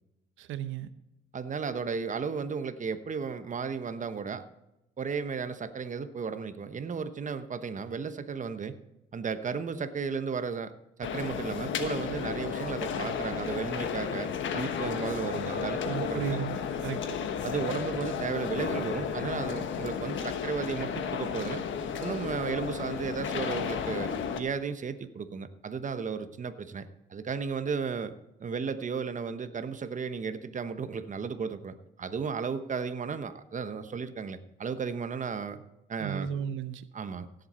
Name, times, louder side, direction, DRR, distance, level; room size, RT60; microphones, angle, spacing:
voice 1, 0.4-0.9 15.8-17.2 36.0-36.8, right 9 dB, 80° right, 13 dB, 0.8 m, -34 dB
voice 2, 1.3-4.4 5.0-8.7 9.1-10.7 11.0-16.4 17.4-21.6 22.0-28.1 28.4-35.6 35.9-36.3 36.9-37.3, right 5 dB, 40° right, 11 dB, 1.0 m, -34 dB
sound 1, 11.0-24.4, left 7 dB, 75° left, 1.3 m, -33 dB
16.5 x 7.9 x 4.3 m, 0.91 s
cardioid pair, 90°, 20 cm